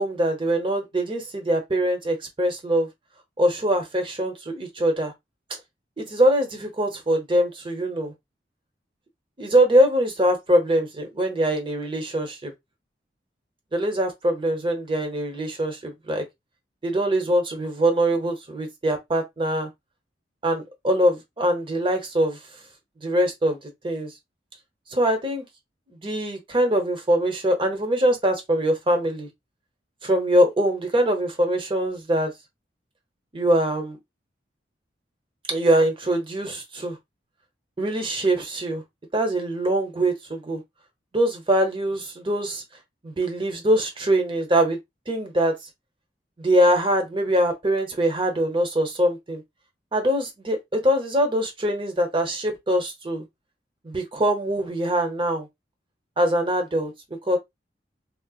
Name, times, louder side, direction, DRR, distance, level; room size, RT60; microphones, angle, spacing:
voice 1, 0.0-2.9 3.4-5.1 6.0-8.1 9.4-12.5 13.7-16.2 16.8-19.7 20.4-22.4 23.0-23.6 23.8-24.1 24.9-25.4 26.0-29.3 30.0-32.3 33.3-34.0 35.5-37.0 37.8-38.8 39.1-40.6 41.1-42.6 43.0-44.8 45.1-45.5 46.4-49.4 49.9-53.2 53.8-55.5 56.2-56.9 57.3-57.4, right 1 dB, 30° right, 0.8 m, -23 dB
3.8 x 2.1 x 2.3 m
head